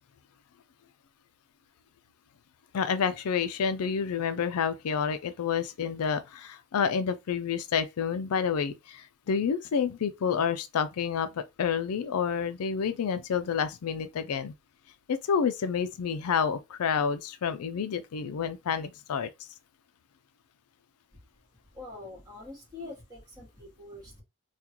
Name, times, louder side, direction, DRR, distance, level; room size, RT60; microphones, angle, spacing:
voice 1, 2.7-14.5 15.1-19.5, left 6 dB, 85° left, 0.4 m, -29 dB
voice 2, 21.7-24.2, left 2 dB, 20° right, 1.7 m, -44 dB
3.7 x 2.3 x 2.9 m
head